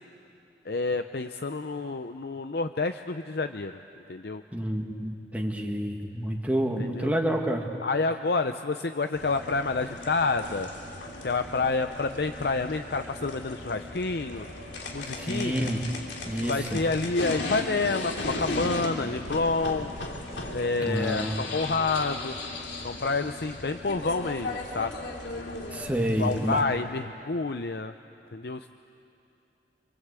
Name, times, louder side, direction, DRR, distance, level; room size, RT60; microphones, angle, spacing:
voice 1, 0.6-3.8 4.1-4.4 6.8-7.2 7.8-10.7 11.2-14.5 14.9-15.7 16.4-19.9 20.5-22.4 22.8-24.9 26.2-27.9 28.3-28.7, left 3 dB, 60° left, 8 dB, 0.6 m, -28 dB
voice 2, 4.5-7.7 15.2-15.8 16.2-16.8 20.8-21.5 25.7-26.6, equal, 10° right, 1 dB, 1.8 m, -29 dB
sound 1, 9.1-26.6, left 2 dB, 85° left, 3.0 m, -37 dB
29.5 x 23.5 x 8.3 m, 2.7 s
head